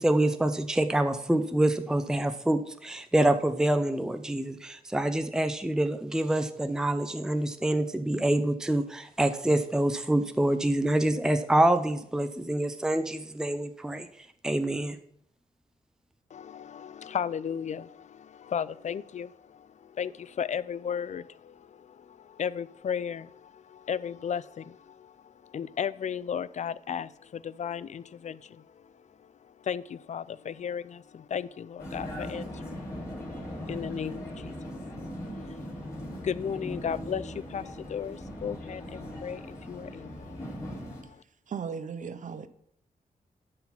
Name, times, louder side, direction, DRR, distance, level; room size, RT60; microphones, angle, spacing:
voice 1, 0.0-15.0, right 1 dB, 5° right, 0.5 m, -26 dB
voice 2, 16.3-41.2, left 8 dB, 55° left, 0.4 m, -36 dB
Vehicle, 31.8-41.0, equal, 20° left, 2.9 m, -39 dB
voice 3, 41.5-42.5, right 6 dB, 60° right, 0.6 m, -36 dB
11.5 x 4.0 x 5.7 m
cardioid pair, 90°, 15 cm